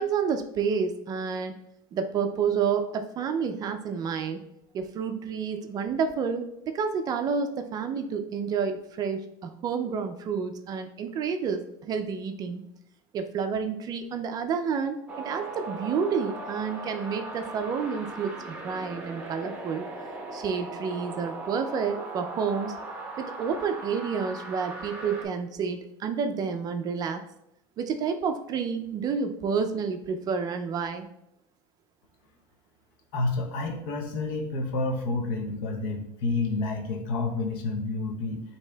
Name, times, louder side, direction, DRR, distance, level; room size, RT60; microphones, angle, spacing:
voice 1, 0.0-1.5 1.9-4.4 4.7-12.6 13.1-19.9 20.3-22.7 23.2-27.2 27.8-31.1, right 6 dB, 35° right, 6 dB, 0.3 m, -29 dB
sound 1, 15.1-25.3, right 2 dB, 10° right, 0.8 m, -38 dB
voice 2, 33.1-38.4, left 3 dB, 80° left, 3 dB, 0.7 m, -29 dB
8.1 x 2.7 x 2.2 m, 0.81 s
supercardioid pair, 135°, 11 cm